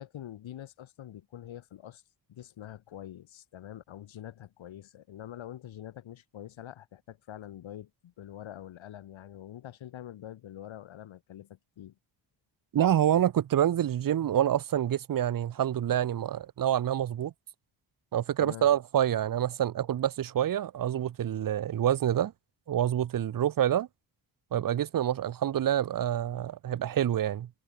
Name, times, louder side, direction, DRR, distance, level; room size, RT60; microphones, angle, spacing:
voice 1, 0.0-2.0 2.3-11.9 18.4-18.7, left 11 dB, 85° left, 3.3 m, -45 dB
voice 2, 12.7-17.3 18.1-22.3 22.7-23.9 24.5-27.5, right 10 dB, 45° right, 0.9 m, -27 dB
wide cardioid pair, 170°, 45 cm